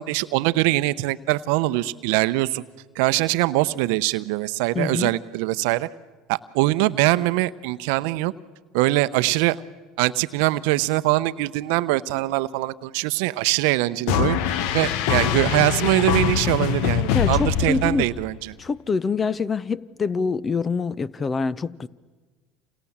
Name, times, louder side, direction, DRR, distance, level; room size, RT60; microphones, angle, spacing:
voice 1, 0.0-2.6 3.0-5.9 6.3-8.3 8.7-9.6 10.0-14.4 14.7-18.3, right 18 dB, 70° right, 0.8 m, -22 dB
voice 2, 4.7-5.1 17.1-18.1 18.6-21.9, left 4 dB, 30° left, 0.8 m, -25 dB
sound 1, 14.1-18.4, left 9 dB, 70° left, 1.2 m, -23 dB
29.5 x 27.5 x 7.3 m
hypercardioid pair, 85°, 0 cm